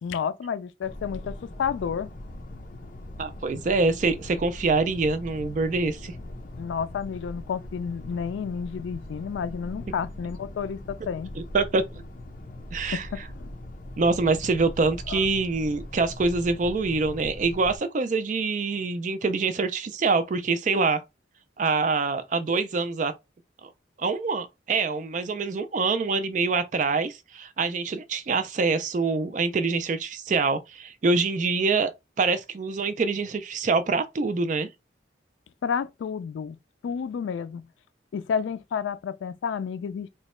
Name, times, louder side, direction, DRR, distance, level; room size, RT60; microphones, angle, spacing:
voice 1, 0.0-2.1 6.6-11.3 12.9-13.5 15.1-15.2 35.6-36.6 36.8-37.6 38.1-40.1, left 7 dB, 80° left, 0.3 m, -31 dB
sound 1, 0.8-17.8, left 1 dB, 45° left, 0.7 m, -41 dB
voice 2, 3.2-6.1 11.4-11.8 12.7-13.1 14.0-21.0 21.6-23.1 23.6-23.7 24.0-31.9 32.2-34.7, right 4 dB, 40° right, 0.3 m, -25 dB
2.9 x 2.2 x 4.2 m
head